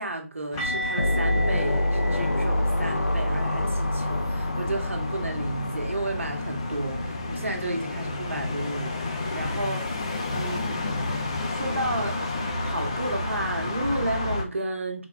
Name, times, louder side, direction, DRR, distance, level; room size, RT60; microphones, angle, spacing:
voice 1, 0.0-10.0 10.3-11.0 11.4-12.2 12.6-15.0, right 2 dB, 60° right, 1.1 m, -32 dB
sound 1, 0.5-14.4, left 2 dB, 25° left, 0.4 m, -31 dB
sound 2, 0.6-6.4 6.6-6.9 7.2-7.4 10.6-10.7, left 1 dB, 10° left, 1.0 m, -36 dB
sound 3, 1.0-7.4, left 1 dB, 80° left, 0.5 m, -27 dB
4.2 x 2.4 x 3.0 m
figure-of-eight pair, 160°, 8 cm